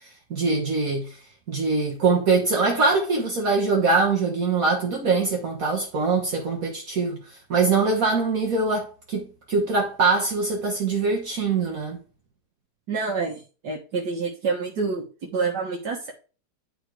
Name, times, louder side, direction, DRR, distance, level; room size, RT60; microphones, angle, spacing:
voice 1, 0.3-1.2 1.5-7.2 7.5-12.0, right 4 dB, 55° right, 1.6 m, -23 dB
voice 2, 12.9-16.1, right 4 dB, 75° right, 1.9 m, -28 dB
10.0 x 4.1 x 4.7 m
omnidirectional pair, 1.8 m